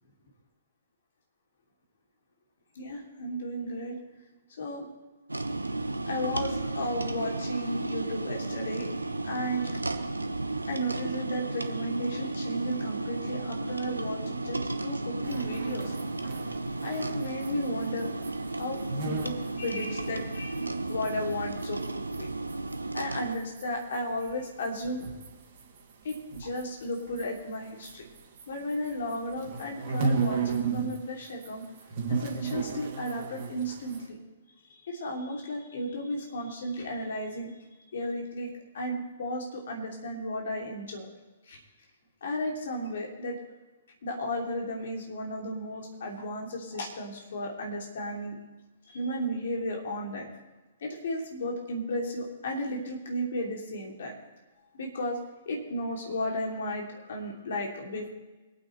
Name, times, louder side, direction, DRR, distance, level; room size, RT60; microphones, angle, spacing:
voice 1, 2.7-4.0 4.6-4.9 6.1-8.9 9.2-9.7 10.7-15.9 16.8-18.1 18.5-22.3 22.9-25.0 26.0-28.0 28.5-31.6 32.1-34.2 34.8-37.5 37.9-38.5 38.7-41.1 41.5-41.6 42.2-43.4 44.0-48.4 48.9-50.3 50.8-54.1 54.8-55.2 55.4-58.1, equal, 55° left, 0 dB, 3.1 m, -34 dB
sound 1, 5.3-23.4, right 2 dB, 80° right, 1.0 m, -34 dB
sound 2, 15.2-22.2 22.5-28.4 28.7-31.0 31.2-34.1, right 4 dB, 40° right, 2.5 m, -35 dB
24.0 x 9.1 x 3.3 m, 1.2 s
figure-of-eight pair, 120°, 0 cm